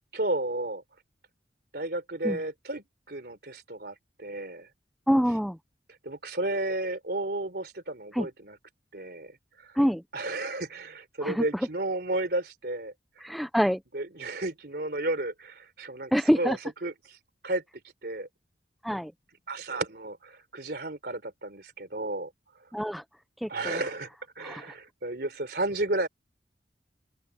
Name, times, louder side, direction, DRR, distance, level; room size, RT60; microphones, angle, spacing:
voice 1, 0.1-0.8 1.7-4.7 6.0-8.6 8.9-9.3 10.1-12.9 13.9-17.2 17.4-17.6 18.0-18.3 19.5-22.3 23.5-24.1 24.4-26.1, right 2 dB, 60° right, 3.8 m, -32 dB
voice 2, 5.1-5.6 8.1-8.3 9.8-10.0 11.2-11.4 13.2-13.8 16.1-16.6 18.8-19.1 22.7-23.0 23.4-23.8 24.4-24.7, equal, ahead, 0.5 m, -26 dB
open air
head